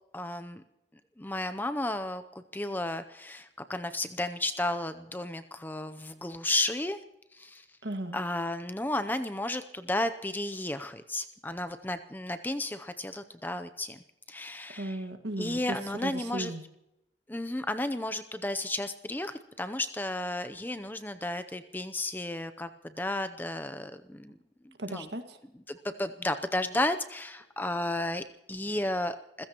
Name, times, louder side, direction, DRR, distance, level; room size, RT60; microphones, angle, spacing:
voice 1, 0.1-0.6 1.2-2.2 2.5-7.0 7.3-7.6 8.1-14.0 14.3-15.0 15.4-16.5 17.3-22.7 23.0-24.3 24.9-25.1 25.7-29.5, left 1 dB, 10° left, 10 dB, 0.6 m, -33 dB
voice 2, 7.8-8.2 14.8-16.6 24.8-25.4, right 1 dB, 65° right, 6 dB, 1.9 m, -36 dB
28.0 x 16.0 x 3.0 m, 0.87 s
head